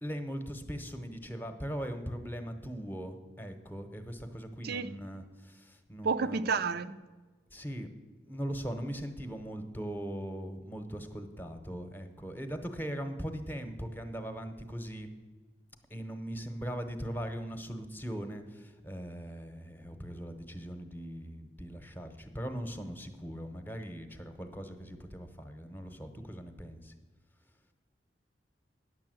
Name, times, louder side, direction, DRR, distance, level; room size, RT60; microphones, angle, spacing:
voice 1, 0.0-6.6 7.5-7.9 8.2-15.1 15.9-26.9, equal, 10° left, 0.9 m, -40 dB
voice 2, 6.0-7.0, right 5 dB, 60° right, 0.5 m, -30 dB
9.8 x 6.9 x 7.7 m
head